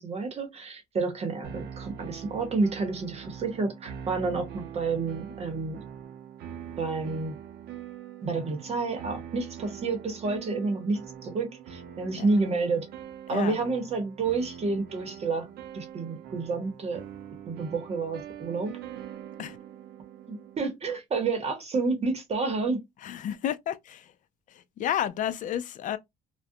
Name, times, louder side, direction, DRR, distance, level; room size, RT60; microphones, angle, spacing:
voice 1, 0.0-5.8 6.8-7.4 8.2-12.9 13.3-15.5 15.7-17.0 17.5-18.7 20.3-22.8, right 3 dB, 40° right, 0.8 m, -29 dB
sound 1, 1.4-20.7, right 9 dB, 70° right, 0.5 m, -43 dB
voice 2, 23.0-24.1 24.5-26.0, left 10 dB, 50° left, 0.4 m, -31 dB
2.4 x 2.1 x 2.6 m
cardioid pair, 110°, 17 cm